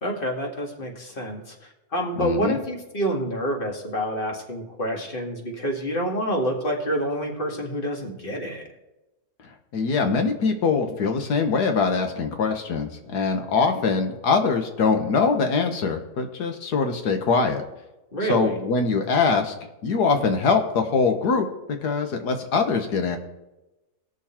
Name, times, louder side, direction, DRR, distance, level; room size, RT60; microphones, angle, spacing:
voice 1, 0.0-8.7 18.1-18.6, equal, 35° left, 1 dB, 2.0 m, -28 dB
voice 2, 2.2-2.6 9.7-17.6 18.3-19.5 19.8-21.5 21.8-23.2, left 4 dB, 85° left, 5 dB, 1.7 m, -23 dB
19.0 x 6.5 x 4.4 m, 0.99 s
omnidirectional pair, 1.7 m